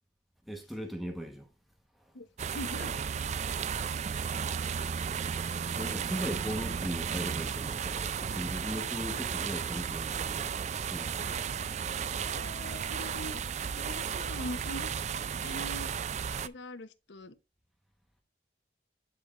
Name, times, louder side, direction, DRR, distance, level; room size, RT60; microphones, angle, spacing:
voice 1, 0.5-1.5 5.7-10.6 10.9-11.4, equal, ahead, 1.1 m, -38 dB
sound 1, 2.4-16.5, right 7 dB, 40° right, 0.3 m, -34 dB
voice 2, 2.5-2.9 12.1-13.4 13.7-14.9 15.4-15.9 16.4-17.3, left 1 dB, 85° left, 0.9 m, -42 dB
10.5 x 4.6 x 2.5 m
head